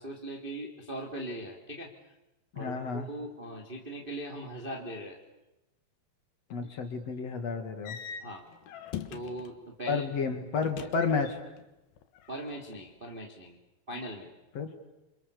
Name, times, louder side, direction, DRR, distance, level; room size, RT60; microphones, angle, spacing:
voice 1, 0.0-1.9 2.5-5.2 6.6-6.8 8.2-8.5 9.1-10.0 10.8-10.9 12.3-13.6 13.9-14.3, right 1 dB, 15° right, 1 dB, 2.4 m, -40 dB
voice 2, 2.6-3.1 6.5-8.0 9.9-11.4 14.6-14.7, left 5 dB, 45° left, 6 dB, 2.6 m, -31 dB
sound 1, 7.8-9.6 10.6-11.6 11.9-12.7, left 8 dB, 65° left, 2.7 m, -42 dB
28.5 x 28.5 x 7.0 m, 0.98 s
omnidirectional pair, 5.8 m